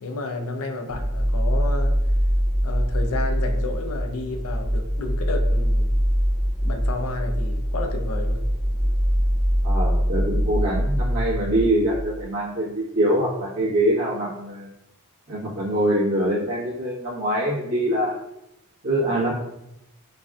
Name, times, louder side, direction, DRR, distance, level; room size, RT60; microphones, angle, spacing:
voice 1, 0.0-1.9 2.6-6.0 6.6-8.5, left 2 dB, 70° left, 5 dB, 0.5 m, -31 dB
sound 1, 0.9-12.0, equal, 5° right, 0.4 m, -23 dB
voice 2, 9.6-14.7 15.3-18.1 18.8-19.3, right 1 dB, 85° right, -6 dB, 1.4 m, -24 dB
4.7 x 2.5 x 2.3 m, 0.85 s
head